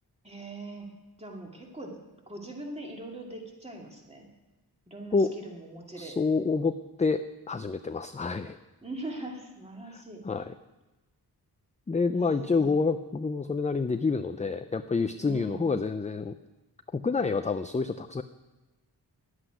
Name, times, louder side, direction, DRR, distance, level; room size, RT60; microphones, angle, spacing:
voice 1, 0.2-0.8 1.2-2.0 2.3-4.3 4.9-6.2 8.8-10.2 12.1-12.8 15.2-15.7, right 1 dB, 15° right, 0 dB, 2.5 m, -41 dB
voice 2, 6.0-8.6 9.9-10.5 11.9-16.4 16.9-18.2, left 4 dB, 20° left, 9 dB, 0.4 m, -28 dB
11.5 x 8.0 x 10.0 m, 1.1 s
wide cardioid pair, 95°, 39 cm